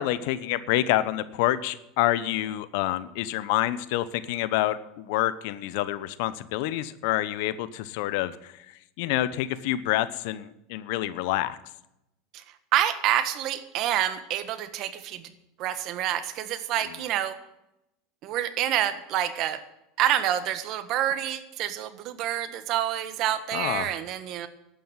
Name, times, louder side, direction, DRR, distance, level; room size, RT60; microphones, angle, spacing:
voice 1, 0.0-8.5 9.0-11.6 16.9-17.0 23.5-23.9, left 14 dB, 70° left, 15 dB, 0.9 m, -27 dB
voice 2, 12.7-15.2 15.6-17.3 18.2-19.6 20.0-24.5, right 11 dB, 55° right, 11 dB, 1.5 m, -27 dB
11.5 x 9.2 x 9.7 m, 0.87 s
hypercardioid pair, 100°, 0 cm